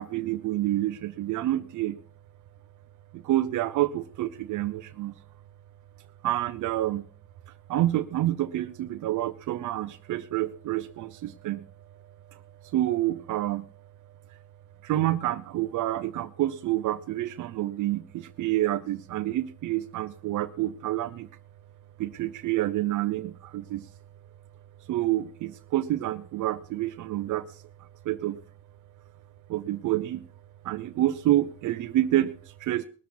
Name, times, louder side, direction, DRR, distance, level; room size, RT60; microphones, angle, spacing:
voice 1, 0.0-2.0 3.1-5.1 6.2-7.1 7.5-11.6 12.3-12.4 12.7-13.7 14.8-21.3 22.0-23.9 24.9-28.4 29.5-30.3 30.6-32.8, right 14 dB, 80° right, 9 dB, 0.8 m, -28 dB
20.0 x 7.2 x 6.1 m, 0.41 s
cardioid pair, 90°, 30 cm